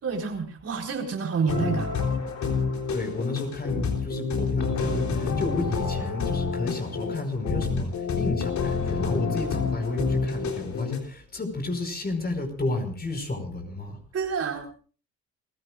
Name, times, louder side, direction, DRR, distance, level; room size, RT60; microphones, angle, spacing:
voice 1, 0.0-1.9 14.1-14.8, right 5 dB, 55° right, 2 dB, 4.4 m, -28 dB
sound 1, 1.5-11.0, left 5 dB, 65° left, 3.6 m, -28 dB
voice 2, 2.9-14.0, left 2 dB, 30° left, 5 dB, 5.1 m, -31 dB
29.5 x 16.0 x 2.5 m, 0.39 s
cardioid pair, 90°, 30 cm